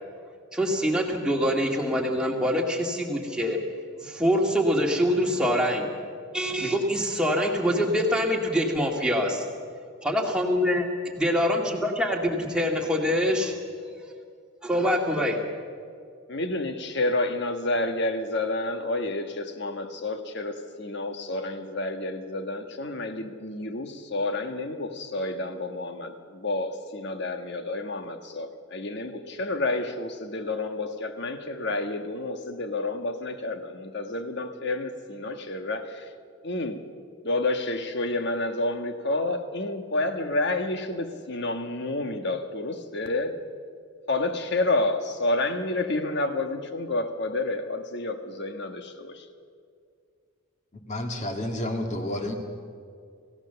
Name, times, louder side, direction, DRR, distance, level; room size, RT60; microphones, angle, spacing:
voice 1, 0.5-3.6 4.0-5.9 6.3-9.5 10.0-10.8 11.2-13.5 14.6-15.4, equal, 5° right, 0 dB, 2.2 m, -24 dB
voice 2, 16.3-36.1 36.4-36.8 37.2-43.4 44.1-49.3, left 2 dB, 50° left, 7 dB, 1.4 m, -29 dB
voice 3, 50.9-52.3, left 1 dB, 30° left, 4 dB, 2.1 m, -30 dB
27.5 x 16.0 x 7.0 m, 2.3 s
head